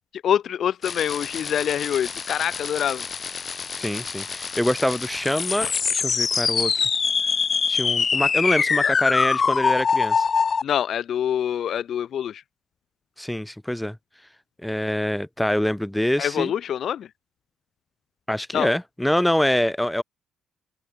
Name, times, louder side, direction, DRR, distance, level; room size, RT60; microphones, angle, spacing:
voice 1, 0.2-3.0 8.8-8.9 10.6-12.4 16.2-17.1 18.5-18.7, left 9 dB, 65° left, 1.0 m, -25 dB
sound 1, 0.8-10.6, left 5 dB, 40° left, 0.8 m, -24 dB
voice 2, 3.8-6.9 7.7-10.3 13.2-14.0 14.6-16.5 18.3-20.0, left 1 dB, 5° left, 3.2 m, -25 dB
open air
cardioid pair, 90°, 0 cm